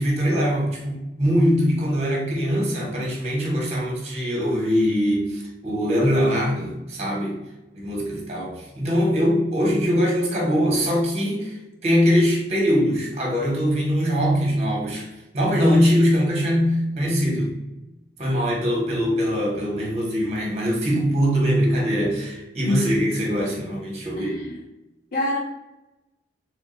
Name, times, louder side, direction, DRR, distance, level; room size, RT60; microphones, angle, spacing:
voice 1, 0.0-7.4 7.7-11.6 11.8-17.5 18.2-24.4, equal, 40° right, -2 dB, 1.3 m, -22 dB
voice 2, 24.2-24.5 25.1-25.4, left 1 dB, 55° left, -2 dB, 0.5 m, -25 dB
3.5 x 2.6 x 3.8 m, 0.99 s
head